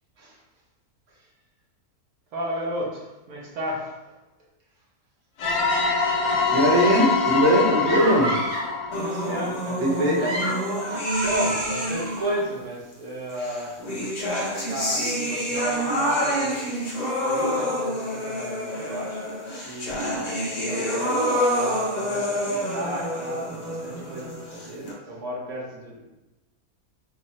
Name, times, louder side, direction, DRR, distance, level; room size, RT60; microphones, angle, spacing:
voice 1, 2.3-4.1 8.9-10.4 11.2-13.7 14.7-16.8 17.2-19.3 19.6-20.3 20.6-21.2 21.5-26.1, equal, 80° right, -3 dB, 1.4 m, -33 dB
sound 1, 5.4-10.0, left 5 dB, 70° left, 1.0 m, -25 dB
voice 2, 6.5-8.3 9.8-10.2, equal, 65° right, -3 dB, 1.2 m, -20 dB
sound 2, 7.8-8.8 10.0-12.4, right 1 dB, 30° right, 1.0 m, -30 dB
sound 3, 8.9-12.4 13.4-24.9, equal, 40° left, 0.7 m, -27 dB
3.7 x 2.0 x 4.1 m, 1.0 s
omnidirectional pair, 1.5 m